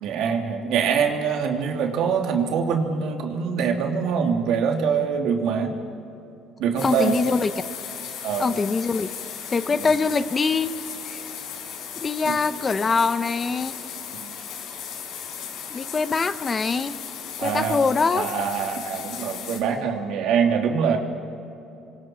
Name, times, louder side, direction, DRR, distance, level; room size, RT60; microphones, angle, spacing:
voice 1, 0.0-5.7 6.6-7.2 8.2-8.5 12.2-12.4 14.2-14.3 17.4-17.8 18.1-21.0, right 6 dB, 75° right, 2 dB, 2.8 m, -24 dB
sound 1, 6.8-19.6, left 7 dB, 80° left, 5.1 m, -36 dB
voice 2, 6.8-7.6 8.4-9.1 9.5-10.7 11.1-11.3 12.0-13.7 15.7-16.9 17.4-18.3, left 4 dB, 25° left, 12 dB, 0.8 m, -23 dB
27.5 x 25.0 x 4.6 m, 2.8 s
cardioid pair, 130°, 0 cm